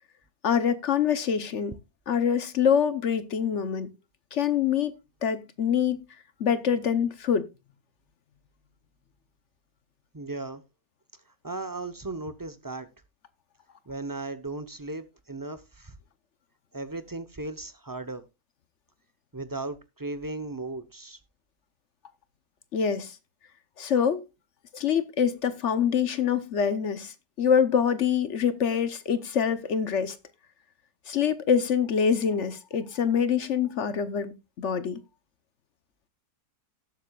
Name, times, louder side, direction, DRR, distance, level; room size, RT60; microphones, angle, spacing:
voice 1, 0.4-1.8 2.1-3.9 4.3-4.9 5.2-6.0 6.4-7.5 22.7-23.2 23.8-24.2 24.7-30.2 31.1-35.0, left 7 dB, 55° left, 1.0 m, -25 dB
voice 2, 10.1-10.6 11.4-12.9 13.9-16.0 16.7-18.3 19.3-21.2, right 2 dB, 25° right, 0.4 m, -36 dB
18.0 x 7.3 x 2.3 m
omnidirectional pair, 1.7 m